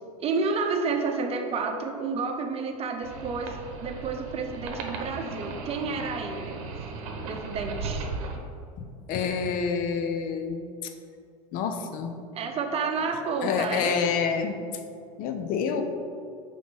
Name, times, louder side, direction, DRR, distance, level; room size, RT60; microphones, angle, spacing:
voice 1, 0.2-6.6 7.2-8.1 12.3-14.0, right 4 dB, 35° right, 4 dB, 0.8 m, -30 dB
sound 1, 3.0-8.4, right 4 dB, 65° right, 0.9 m, -36 dB
voice 2, 9.1-10.6 10.8-10.9 11.5-12.1 13.4-14.6 15.2-15.8, left 6 dB, 50° left, 7 dB, 0.7 m, -27 dB
5.1 x 3.8 x 5.2 m, 2.3 s
hypercardioid pair, 90°, 18 cm